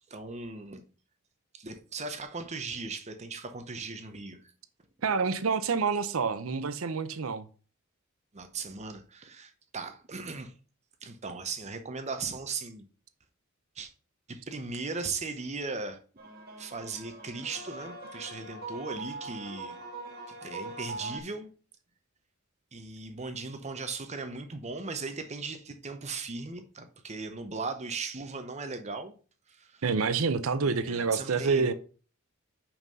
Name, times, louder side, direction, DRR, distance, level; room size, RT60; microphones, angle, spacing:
voice 1, 0.1-0.8 1.5-4.5 8.3-10.5 11.0-12.8 13.8-13.9 14.3-16.0 16.6-19.7 20.3-21.5 22.7-29.1 29.5-29.9 30.6-31.7, right 4 dB, 35° right, 0.8 m, -38 dB
voice 2, 5.0-7.4 29.8-31.7, right 5 dB, 80° right, 0.6 m, -28 dB
sound 1, 16.2-21.2, right 2 dB, 50° right, 1.7 m, -42 dB
5.8 x 5.4 x 5.4 m
head